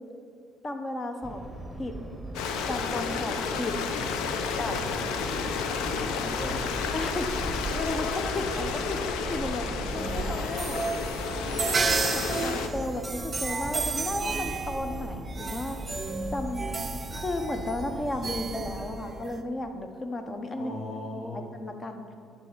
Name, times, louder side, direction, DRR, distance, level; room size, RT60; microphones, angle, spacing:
voice 1, 0.6-1.4 1.8-2.0 2.7-3.8 4.6-4.8 6.9-7.3 7.7-9.7 9.9-10.8 11.6-15.8 16.3-16.8 17.1-20.7 21.3-22.0, left 2 dB, 30° left, 6 dB, 0.9 m, -34 dB
sound 1, 1.2-19.0, right 1 dB, 5° right, 1.3 m, -38 dB
Stream, 2.3-12.7, left 6 dB, 80° left, 0.5 m, -32 dB
voice 2, 4.6-6.9 9.9-10.2 20.5-21.5, left 2 dB, 55° left, 3 dB, 1.4 m, -39 dB
sound 2, 9.9-19.4, right 4 dB, 35° right, 0.5 m, -33 dB
9.9 x 4.1 x 5.8 m, 2.4 s
supercardioid pair, 65°, 0 cm